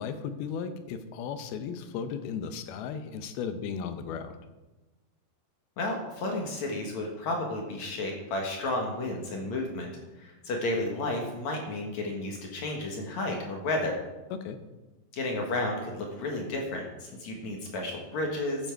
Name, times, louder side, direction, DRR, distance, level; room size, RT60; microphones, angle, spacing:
voice 1, 0.0-4.4 14.3-14.6, left 6 dB, 75° left, 9 dB, 2.5 m, -35 dB
voice 2, 5.8-9.9 10.2-14.0 15.1-18.7, left 2 dB, 60° left, 1 dB, 2.1 m, -32 dB
13.5 x 8.0 x 4.6 m, 1.1 s
omnidirectional pair, 4.8 m